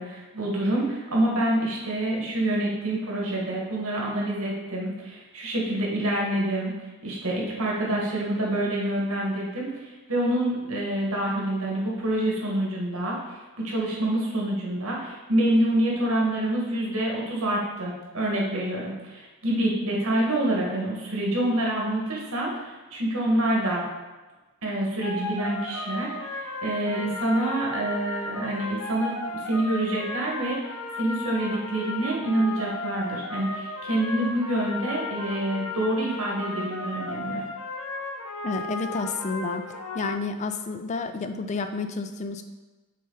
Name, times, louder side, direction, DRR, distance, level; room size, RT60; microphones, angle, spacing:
voice 1, 0.0-6.7 7.0-23.8 24.6-29.1 29.4-37.4, right 1 dB, 70° right, -2 dB, 1.6 m, -27 dB
sound 1, 25.0-40.1, left 2 dB, 70° left, 0.9 m, -35 dB
voice 2, 26.9-27.2 38.4-39.7 39.9-42.4, left 4 dB, 30° left, 8 dB, 0.4 m, -30 dB
6.5 x 4.1 x 3.8 m, 1.2 s
head